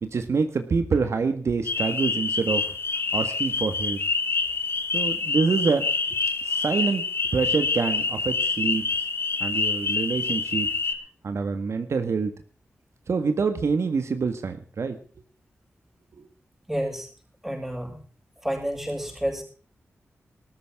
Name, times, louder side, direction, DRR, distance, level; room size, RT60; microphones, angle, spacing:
voice 1, 0.0-2.7 3.1-4.0 4.9-5.9 6.4-9.0 9.4-10.7 11.2-12.3 13.1-15.0 16.2-16.3, right 5 dB, 70° right, 8 dB, 1.6 m, -26 dB
sound 1, 1.6-10.9, left 4 dB, 50° left, 2.0 m, -27 dB
voice 2, 16.7-17.1 17.4-18.0 18.4-19.4, equal, 5° right, 2 dB, 6.7 m, -29 dB
19.5 x 14.0 x 3.6 m, 0.40 s
wide cardioid pair, 110°, 5 cm